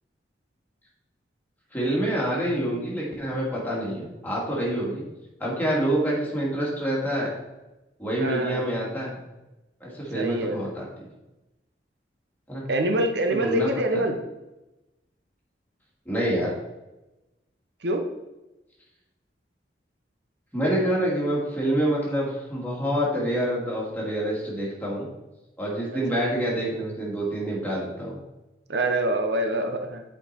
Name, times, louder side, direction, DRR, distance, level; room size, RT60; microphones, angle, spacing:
voice 1, 1.7-5.0 5.4-7.3 8.0-9.2 9.8-11.1 12.5-12.6 13.3-14.0 16.1-16.5 20.5-25.1 25.6-28.2, right 1 dB, 10° left, -5 dB, 2.4 m, -27 dB
voice 2, 8.2-8.6 10.1-10.7 12.7-14.2 17.8-18.0 25.9-26.0 28.7-30.0, right 1 dB, 70° right, 5 dB, 0.8 m, -25 dB
8.0 x 4.7 x 4.3 m, 1.0 s
head